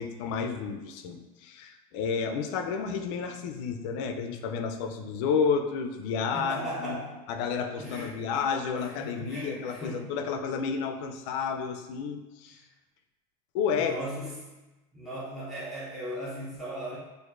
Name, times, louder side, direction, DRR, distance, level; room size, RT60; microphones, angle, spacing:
voice 1, 0.0-7.0 7.3-12.6 13.5-14.0, left 6 dB, 60° left, 6 dB, 0.4 m, -31 dB
voice 2, 6.3-7.2 7.8-8.2 8.8-10.1 12.5-12.6 13.8-14.5 14.9-17.0, right 1 dB, ahead, -9 dB, 0.5 m, -37 dB
6.3 x 2.5 x 2.5 m, 1.1 s
cardioid pair, 165°, 18 cm